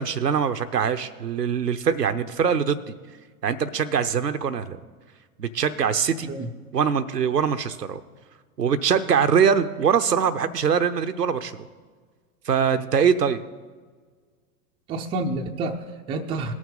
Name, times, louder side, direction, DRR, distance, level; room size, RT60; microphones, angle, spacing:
voice 1, 0.0-2.9 3.4-4.8 5.4-6.3 6.7-8.0 8.6-11.5 12.5-13.4, right 7 dB, 90° right, 10 dB, 0.7 m, -23 dB
voice 2, 14.9-16.5, right 2 dB, 15° right, 4 dB, 0.4 m, -29 dB
18.0 x 6.3 x 3.7 m, 1.5 s
figure-of-eight pair, 95°, 46 cm